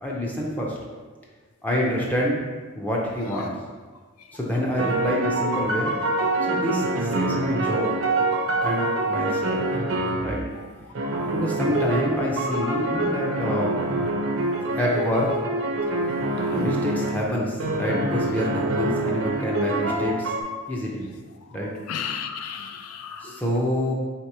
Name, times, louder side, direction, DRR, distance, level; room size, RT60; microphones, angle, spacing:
voice 1, 0.0-0.8 1.6-2.4 2.7-3.5 4.3-6.0 6.4-7.9 8.6-9.6 10.2-10.4 11.3-13.8 14.7-15.4 16.5-20.3 20.7-21.1 21.5-21.7 23.2-23.9, equal, 5° left, -4 dB, 0.5 m, -27 dB
sound 1, 4.8-10.4 10.9-17.2 17.6-20.4, right 2 dB, 70° right, 0.6 m, -25 dB
voice 2, 12.9-13.4 14.0-14.1 21.9-23.4, left 7 dB, 85° left, 6 dB, 0.4 m, -34 dB
3.2 x 2.9 x 4.6 m, 1.4 s
head